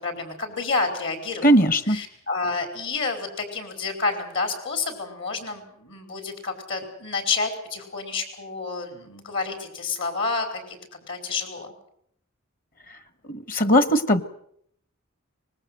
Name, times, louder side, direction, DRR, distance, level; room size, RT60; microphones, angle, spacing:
voice 1, 0.0-10.8 11.1-11.7, left 4 dB, 65° left, 7 dB, 5.2 m, -29 dB
voice 2, 1.4-2.0 13.3-14.2, equal, 45° left, 13 dB, 1.4 m, -19 dB
25.0 x 20.0 x 7.9 m, 0.68 s
head